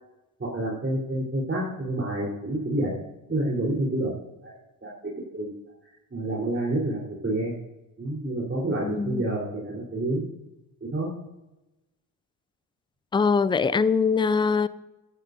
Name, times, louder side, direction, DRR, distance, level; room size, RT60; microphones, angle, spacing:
voice 1, 0.4-2.9 3.3-4.1 4.4-4.5 4.8-4.9 5.2-5.5 6.1-7.5 8.0-10.2 10.9-11.1, right 1 dB, 25° right, -5 dB, 4.1 m, -28 dB
voice 2, 8.8-9.3 13.1-14.7, left 5 dB, 10° left, 17 dB, 0.4 m, -23 dB
17.5 x 11.5 x 2.7 m, 0.99 s
hypercardioid pair, 60°, 49 cm